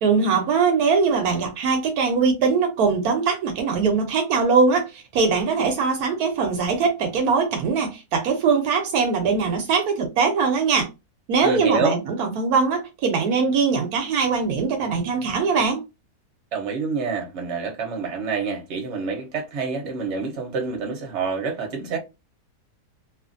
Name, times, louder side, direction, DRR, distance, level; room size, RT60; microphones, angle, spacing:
voice 1, 0.0-10.9 11.3-15.8, right 5 dB, 75° right, 1.1 m, -21 dB
voice 2, 11.4-12.0 16.5-22.0, right 4 dB, 50° right, 1.0 m, -27 dB
2.9 x 2.5 x 2.5 m
omnidirectional pair, 1.7 m